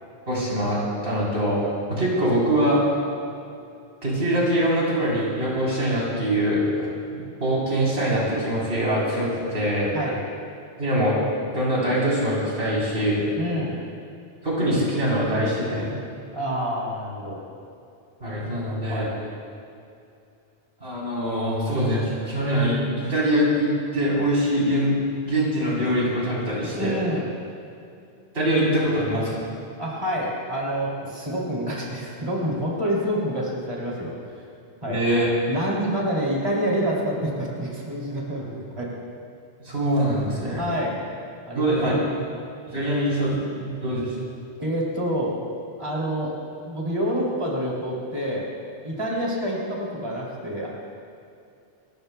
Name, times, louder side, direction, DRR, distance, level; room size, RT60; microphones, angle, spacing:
voice 1, 0.3-1.6 1.9-2.8 4.0-6.9 7.4-9.9 10.8-11.2 11.5-13.2 14.4-15.9 18.2-19.1 20.8-24.9 25.2-27.0 28.3-29.5 34.8-35.3 39.6-40.6 41.5-41.9 42.7-44.1, equal, 75° right, -6 dB, 4.3 m, -23 dB
voice 2, 13.4-13.8 16.3-17.4 18.9-19.2 26.8-27.3 29.8-34.1 34.8-35.0 35.5-38.9 40.6-41.0 41.5-42.1 44.6-45.4 45.8-46.3 46.6-48.5 48.8-50.7, equal, 30° right, -5 dB, 3.0 m, -27 dB
29.5 x 15.0 x 2.3 m, 2.6 s
omnidirectional pair, 1.1 m